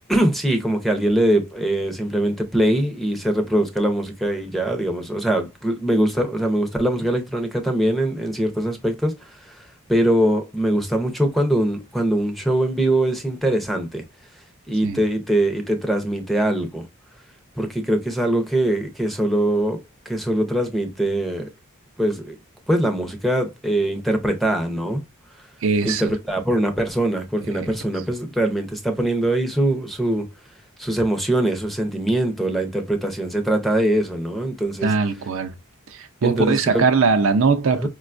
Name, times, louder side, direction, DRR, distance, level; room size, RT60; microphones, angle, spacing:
voice 1, 0.1-9.6 9.9-14.0 14.7-16.9 17.6-21.5 22.0-22.4 22.7-25.0 25.8-30.3 30.8-34.9 36.2-36.8 37.7-37.9, right 1 dB, ahead, 0.6 m, -22 dB
voice 2, 25.6-26.1 27.5-27.7 34.8-35.5 35.9-37.9, right 4 dB, 60° right, 0.5 m, -20 dB
4.9 x 2.3 x 2.4 m
head